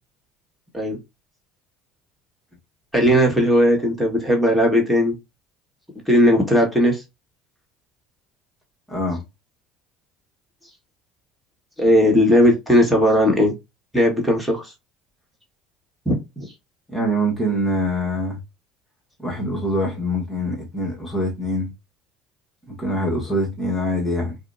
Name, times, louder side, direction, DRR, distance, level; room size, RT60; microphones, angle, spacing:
voice 1, 2.9-5.2 6.1-7.0 11.8-13.5 13.9-14.7 16.0-16.5, equal, 5° right, 1.6 m, -17 dB
voice 2, 8.9-9.2 16.9-18.4 19.2-21.7 22.7-24.4, equal, 15° left, 1.4 m, -24 dB
4.8 x 2.3 x 2.6 m
supercardioid pair, 90°, 0 cm